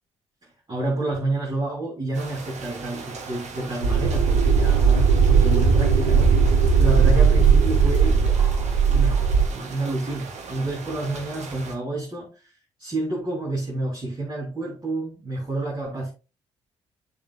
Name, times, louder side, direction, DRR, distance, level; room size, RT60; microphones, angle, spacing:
voice 1, 0.7-12.5 12.8-16.1, right 2 dB, 30° right, 3.2 m, -29 dB
sound 1, 2.1-11.7, right 4 dB, 50° right, 1.5 m, -39 dB
sound 2, 3.8-9.5, right 5 dB, 75° right, 0.9 m, -18 dB
9.5 x 7.0 x 2.3 m
figure-of-eight pair, 40°, 15 cm